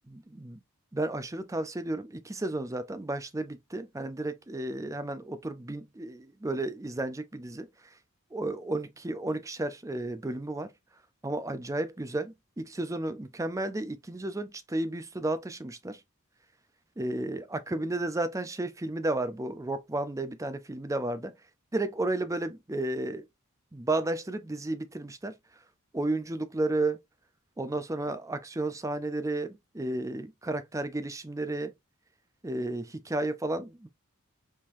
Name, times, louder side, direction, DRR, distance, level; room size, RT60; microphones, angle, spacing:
voice 1, 0.1-0.6 0.9-7.7 8.3-10.7 11.2-16.0 17.0-21.4 21.7-23.2 23.7-25.3 25.9-27.0 27.6-31.7 32.4-33.9, right 2 dB, 15° right, 0.5 m, -32 dB
4.7 x 3.6 x 2.6 m
head